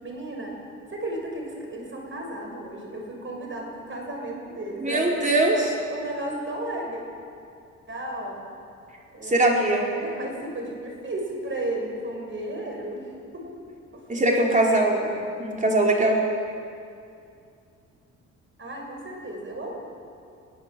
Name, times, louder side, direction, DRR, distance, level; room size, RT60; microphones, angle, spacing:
voice 1, 0.0-0.5 0.9-7.0 7.9-8.4 9.1-13.5 13.9-14.1 18.6-19.8, right 1 dB, 40° right, 1 dB, 6.6 m, -34 dB
voice 2, 4.8-5.7 9.2-9.9 14.1-16.2, right 1 dB, 25° right, -1 dB, 5.0 m, -21 dB
23.0 x 14.5 x 8.0 m, 2.5 s
cardioid pair, 90°, 30 cm